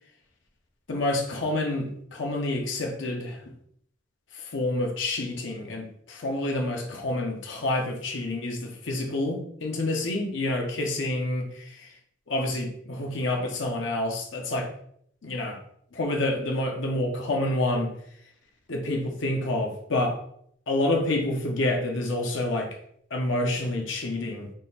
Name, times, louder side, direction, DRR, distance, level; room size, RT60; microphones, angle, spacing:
voice 1, 0.9-3.4 4.3-11.9 12.3-14.7 15.2-15.6 15.9-17.9 18.7-20.2 20.7-22.8 23.1-24.5, left 1 dB, 70° left, 2 dB, 0.7 m, -28 dB
3.8 x 2.4 x 4.0 m, 0.67 s
head